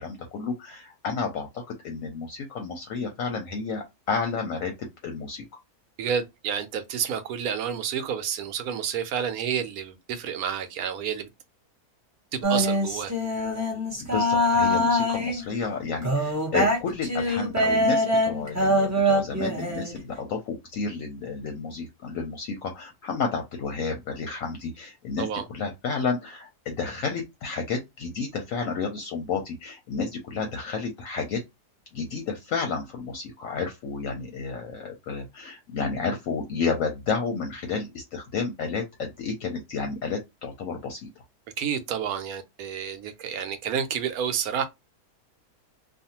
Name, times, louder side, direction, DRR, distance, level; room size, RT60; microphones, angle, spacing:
voice 1, 0.0-5.4 14.0-31.4 31.9-41.1, left 5 dB, 70° left, 0.9 m, -31 dB
voice 2, 6.0-11.3 12.3-13.1 25.2-25.4 41.6-44.6, right 8 dB, 75° right, 1.0 m, -30 dB
sound 1, 12.4-15.4 16.0-19.9, equal, 25° right, 0.3 m, -24 dB
2.6 x 2.4 x 2.8 m
omnidirectional pair, 1.6 m